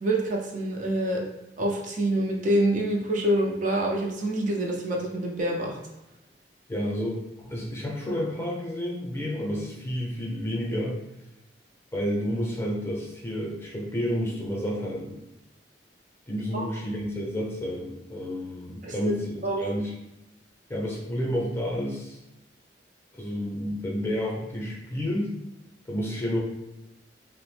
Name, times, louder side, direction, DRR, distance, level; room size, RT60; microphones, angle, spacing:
voice 1, 0.0-1.2 1.6-5.7 16.5-16.7 18.8-19.1 19.4-19.6, right 1 dB, 50° right, -1 dB, 0.5 m, -26 dB
voice 2, 6.7-11.0 11.9-15.2 16.3-19.9 20.7-22.2 23.1-25.3 25.9-26.4, equal, 15° left, -3 dB, 0.6 m, -30 dB
3.0 x 2.0 x 3.2 m, 0.91 s
head